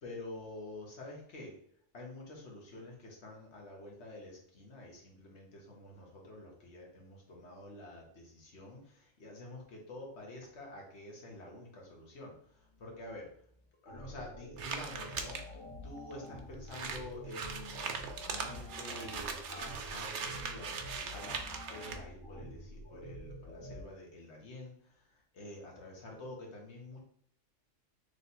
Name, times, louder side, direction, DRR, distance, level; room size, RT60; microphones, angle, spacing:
voice 1, 0.0-1.5 1.9-13.3 13.8-18.0 18.3-27.0, left 2 dB, 65° left, -1 dB, 1.4 m, -48 dB
sound 1, 13.9-23.8, equal, 85° left, 1.5 m, -47 dB
sound 2, 14.6-15.4 16.1-16.2 16.4-16.5 16.7-22.0, right 5 dB, 70° right, 0.9 m, -40 dB
3.3 x 3.2 x 4.0 m, 0.64 s
omnidirectional pair, 1.3 m